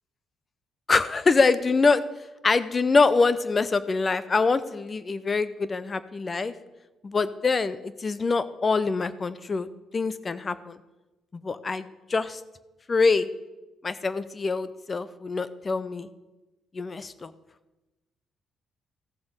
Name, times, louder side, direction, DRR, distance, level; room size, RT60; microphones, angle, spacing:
voice 1, 0.9-2.0 2.4-6.5 7.0-9.7 9.9-10.8 11.3-12.4 12.9-13.3 13.8-16.1 16.7-17.3, left 4 dB, 35° left, 15 dB, 0.7 m, -24 dB
14.5 x 6.9 x 5.2 m, 1.1 s
cardioid pair, 90°, 0 cm